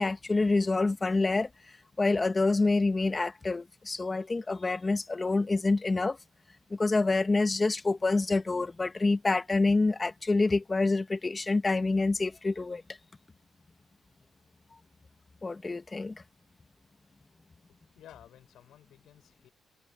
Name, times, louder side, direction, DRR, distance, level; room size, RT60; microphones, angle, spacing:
voice 1, 0.0-1.5 2.0-6.2 6.7-12.8 15.4-16.2, left 3 dB, 25° left, 1.2 m, -27 dB
voice 2, 17.9-19.5, left 11 dB, 75° left, 5.4 m, -54 dB
cardioid pair, 90°, 0 cm